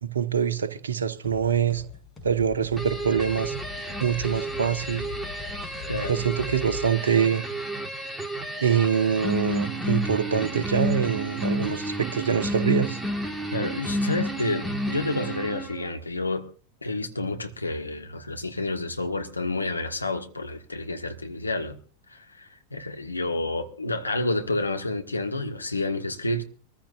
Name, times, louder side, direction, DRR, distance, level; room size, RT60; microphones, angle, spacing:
voice 1, 0.0-1.8 2.2-3.5 4.0-5.1 6.1-7.4 8.6-13.0, right 7 dB, 70° right, 1.2 m, -24 dB
sound 1, 1.2-6.9, left 6 dB, 20° left, 6.6 m, -41 dB
sound 2, 2.8-15.9, equal, 5° right, 1.9 m, -31 dB
voice 2, 13.5-16.5 16.8-21.8 22.1-26.4, left 2 dB, 80° left, 1.6 m, -29 dB
24.0 x 14.5 x 2.6 m
figure-of-eight pair, 90°, 0 cm